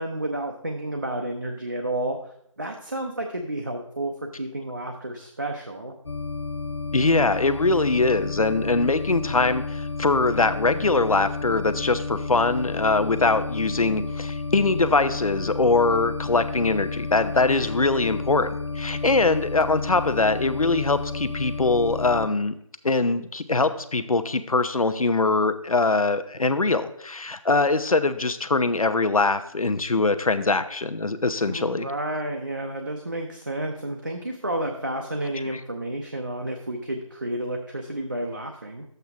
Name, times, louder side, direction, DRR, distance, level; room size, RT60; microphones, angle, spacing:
voice 1, 0.0-2.2 2.6-6.0 31.4-38.8, right 1 dB, 35° right, 2 dB, 0.7 m, -31 dB
sound 1, 6.1-22.3, left 4 dB, 55° left, 0.5 m, -32 dB
voice 2, 6.9-22.5 22.8-31.9 35.5-35.6, left 3 dB, 90° left, 11 dB, 0.9 m, -22 dB
10.5 x 8.0 x 3.5 m, 0.71 s
figure-of-eight pair, 175°, 18 cm